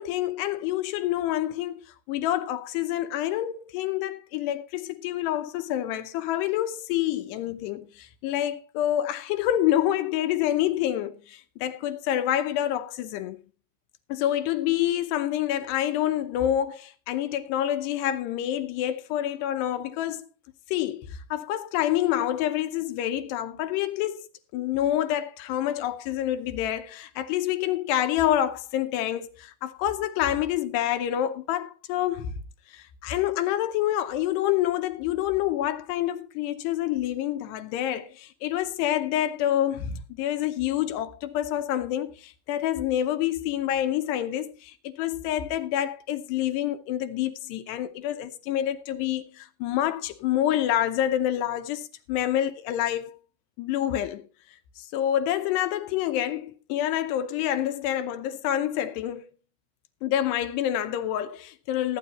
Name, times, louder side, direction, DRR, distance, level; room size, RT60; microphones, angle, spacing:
voice 1, 0.0-1.8 2.1-13.4 14.1-20.2 20.7-24.3 24.5-32.4 32.7-53.2 53.6-54.2 54.8-59.2 60.0-62.0, left 12 dB, 80° left, 2.8 m, -27 dB
15.5 x 9.1 x 4.1 m
omnidirectional pair, 5.0 m